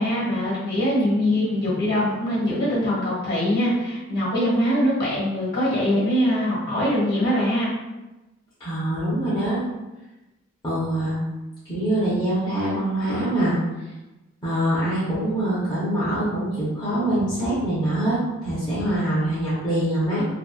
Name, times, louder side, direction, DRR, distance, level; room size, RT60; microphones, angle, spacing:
voice 1, 0.0-7.7, equal, 50° left, -7 dB, 1.2 m, -22 dB
voice 2, 8.6-9.6 10.6-11.2 11.6-13.5 14.4-20.2, right 1 dB, 20° left, -11 dB, 0.6 m, -24 dB
2.7 x 2.5 x 2.2 m, 1.1 s
head